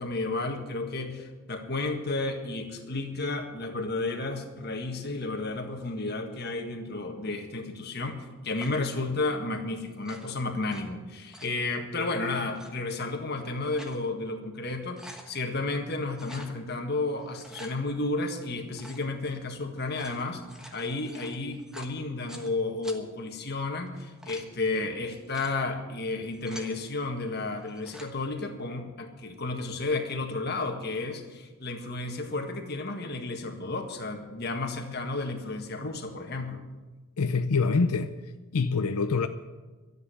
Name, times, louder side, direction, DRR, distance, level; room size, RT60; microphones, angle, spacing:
voice 1, 0.0-20.4 20.7-36.6, left 2 dB, 45° left, 1.7 m, -32 dB
sound 1, 8.6-8.9 9.9-10.8 11.1-11.6 12.4-12.7 13.4-14.0 14.4-14.5 14.8-15.3 16.1-16.5 17.2-17.7 18.7-19.1 19.8-22.5 22.8-23.0 23.9-24.5 25.1-25.5 26.1-26.7 27.6-28.1, equal, 5° right, 1.2 m, -48 dB
voice 2, 37.2-38.1 38.5-39.3, left 4 dB, 85° left, 0.6 m, -25 dB
13.0 x 8.3 x 9.6 m
head